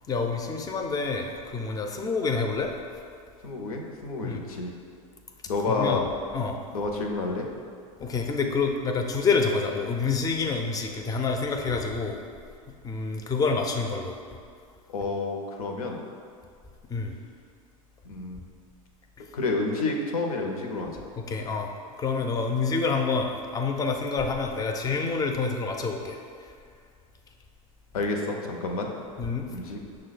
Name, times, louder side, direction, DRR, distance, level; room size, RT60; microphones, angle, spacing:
voice 1, 0.1-2.7 4.2-4.4 5.7-6.0 6.3-6.6 8.0-12.2 12.8-14.2 16.9-17.2 21.2-21.7 22.0-26.2 29.2-29.5, left 4 dB, 20° left, 3 dB, 0.4 m, -27 dB
voice 2, 3.4-4.7 5.5-6.0 6.7-7.5 14.9-16.0 18.0-18.5 19.3-21.0 27.9-28.9 29.5-29.8, left 3 dB, 85° left, 2 dB, 0.7 m, -29 dB
6.0 x 2.2 x 4.0 m, 2.3 s
hypercardioid pair, 105°, 18 cm